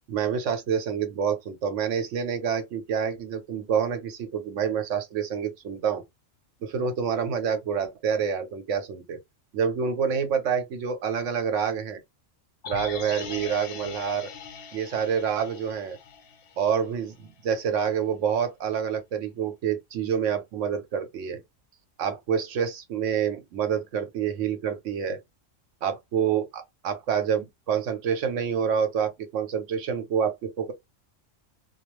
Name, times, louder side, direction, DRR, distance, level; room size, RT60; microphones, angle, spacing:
voice 1, 0.1-6.0 6.6-9.2 9.5-12.0 12.7-14.3 14.7-16.0 16.6-21.4 22.0-25.2 25.8-30.7, right 7 dB, 75° right, 1.0 m, -27 dB
sound 1, 12.6-16.8 17.2-17.3, left 6 dB, 60° left, 0.6 m, -41 dB
2.3 x 2.3 x 3.0 m
omnidirectional pair, 1.3 m